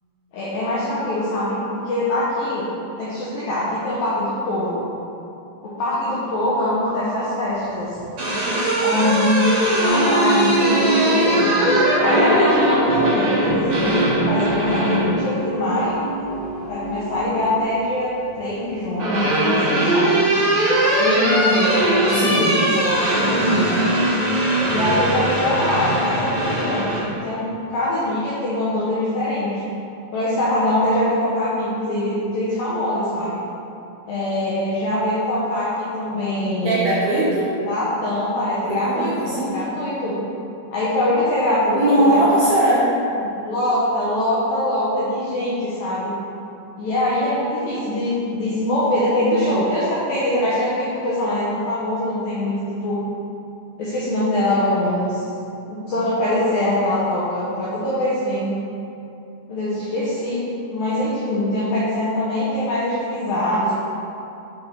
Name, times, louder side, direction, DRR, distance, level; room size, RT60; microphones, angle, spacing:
voice 1, 0.3-2.7 3.0-4.9 5.6-8.0 8.8-11.6 12.0-16.0 16.7-20.2 21.0-23.7 24.7-29.6 30.1-33.4 34.1-36.9 37.7-40.2 40.7-42.2 43.2-46.1 46.8-53.0 53.8-55.3 55.7-58.5 59.5-60.4 60.7-63.7, left 1 dB, 80° left, -9 dB, 2.1 m, -23 dB
sound 1, 7.9-15.1 16.6-17.3 18.5-27.0, right 1 dB, 60° right, 1.6 m, -21 dB
sound 2, 9.9-17.6, right 1 dB, 65° left, 2.7 m, -24 dB
voice 2, 22.1-22.5 23.4-23.9 36.6-37.5 38.7-39.5 41.7-42.8, right 1 dB, 75° right, -9 dB, 2.3 m, -20 dB
8.0 x 3.4 x 3.5 m, 2.7 s
omnidirectional pair, 5.0 m